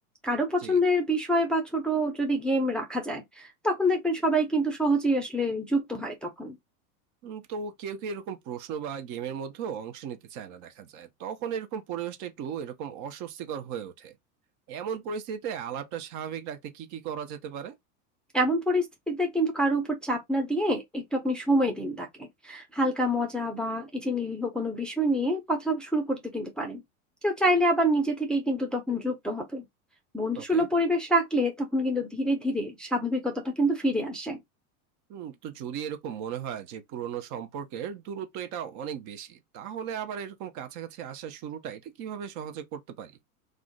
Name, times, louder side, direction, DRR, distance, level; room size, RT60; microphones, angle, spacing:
voice 1, 0.2-6.6 18.3-26.8 27.2-29.6 30.1-34.4, equal, ahead, 0.5 m, -27 dB
voice 2, 7.2-14.1 14.7-17.8 30.4-30.7 35.1-43.1, right 8 dB, 40° right, 0.6 m, -36 dB
2.4 x 2.1 x 3.6 m
hypercardioid pair, 100°, 44 cm